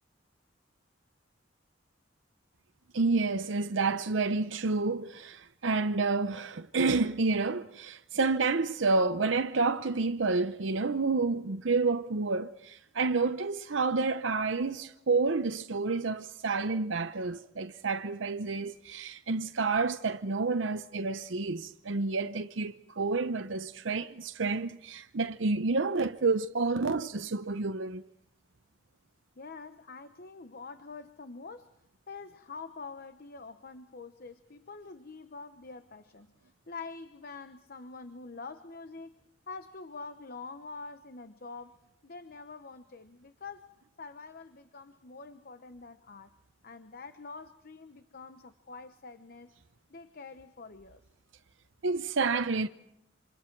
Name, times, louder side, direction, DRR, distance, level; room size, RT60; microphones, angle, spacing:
voice 1, 2.9-28.0 51.8-52.7, right 3 dB, 70° right, 0.8 m, -29 dB
voice 2, 29.4-31.7 32.1-39.1 39.5-41.7 42.0-43.7 44.0-46.3 46.6-49.5 49.9-51.0, left 4 dB, 50° left, 0.9 m, -46 dB
28.0 x 26.5 x 4.6 m
head